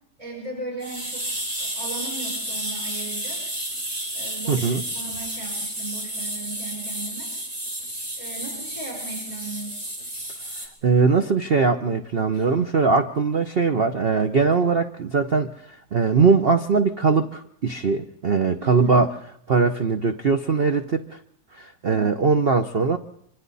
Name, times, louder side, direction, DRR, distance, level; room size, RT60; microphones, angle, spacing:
voice 1, 0.2-1.3 1.6-3.5 4.1-7.3 8.2-9.8 12.3-12.4 18.6-19.1 21.9-22.1, right 3 dB, 15° right, -2 dB, 5.7 m, -37 dB
sound 1, 0.8-10.7, right 1 dB, 35° right, 4.4 m, -31 dB
voice 2, 4.5-4.8 10.8-19.1 19.5-21.2 21.5-23.0, right 4 dB, 50° right, 7 dB, 0.7 m, -21 dB
26.0 x 25.5 x 4.1 m, 0.70 s
omnidirectional pair, 2.2 m